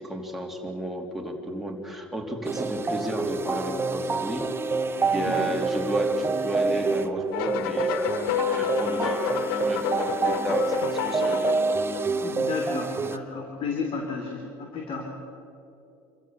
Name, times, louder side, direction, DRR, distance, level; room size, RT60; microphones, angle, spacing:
voice 1, 0.0-4.5 5.1-11.4, equal, ahead, 1 dB, 3.2 m, -32 dB
sound 1, 2.4-13.2, right 4 dB, 20° right, 1.2 m, -27 dB
voice 2, 5.0-5.4 12.2-15.1, left 4 dB, 50° left, 2 dB, 3.2 m, -33 dB
sound 2, 7.3-12.3, left 11 dB, 85° left, 0.7 m, -30 dB
27.0 x 15.0 x 7.4 m, 3.0 s
supercardioid pair, 100°, 11 cm